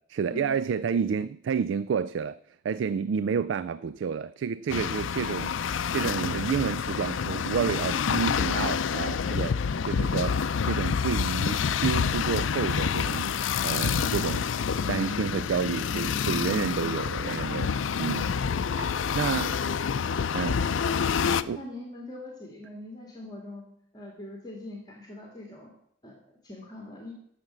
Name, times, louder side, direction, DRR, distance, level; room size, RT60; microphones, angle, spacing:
voice 1, 0.1-2.4 2.6-9.6 9.9-10.3 10.6-13.3 13.6-14.5 14.9-17.7 18.0-18.3 18.8-19.6 20.3-20.6 21.5-21.6, right 6 dB, 70° right, 0.3 m, -30 dB
sound 1, 4.7-21.4, left 6 dB, 90° left, 0.5 m, -28 dB
voice 2, 20.9-23.7 23.9-25.7 26.0-26.2 26.4-27.1, left 1 dB, 20° left, 1.9 m, -42 dB
14.5 x 6.0 x 7.4 m
head